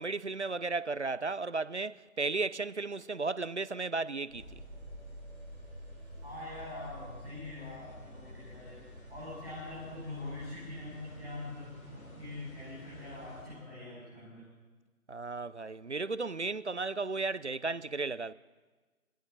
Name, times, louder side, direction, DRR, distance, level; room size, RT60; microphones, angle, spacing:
voice 1, 0.0-4.6 15.1-18.3, right 3 dB, 50° right, 0.6 m, -34 dB
sound 1, 4.3-13.4, equal, 70° left, 7.9 m, -49 dB
voice 2, 6.2-14.4, left 2 dB, 5° right, 4.5 m, -44 dB
23.0 x 20.5 x 6.4 m
figure-of-eight pair, 160°, 44 cm